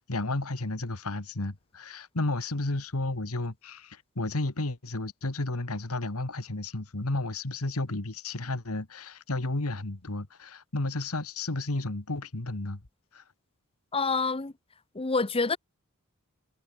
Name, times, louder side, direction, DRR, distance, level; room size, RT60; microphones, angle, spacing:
voice 1, 0.0-12.8 13.1-13.2, left 2 dB, 80° left, 1.8 m, -32 dB
voice 2, 13.9-14.5 14.9-15.6, left 4 dB, 25° left, 0.9 m, -27 dB
head